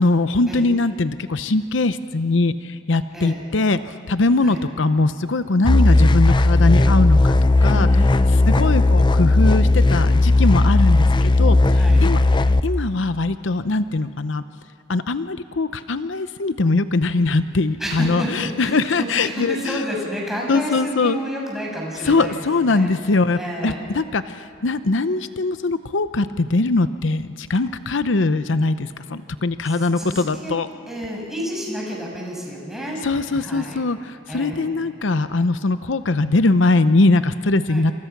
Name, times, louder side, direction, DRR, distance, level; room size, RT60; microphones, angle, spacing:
voice 1, 0.0-3.8 4.1-7.3 7.6-7.9 8.5-11.6 12.0-12.2 12.6-14.4 14.9-19.8 20.5-21.2 22.0-30.7 33.0-37.9, left 3 dB, 75° left, 11 dB, 0.7 m, -21 dB
sound 1, 5.6-12.6, left 2 dB, 25° left, 0.6 m, -15 dB
voice 2, 7.7-8.5 11.7-12.1 17.8-22.9 23.4-23.8 29.6-30.6 30.9-33.8 34.3-34.7 37.7-37.9, equal, ahead, -2 dB, 6.9 m, -30 dB
28.5 x 27.0 x 6.0 m, 2.7 s
head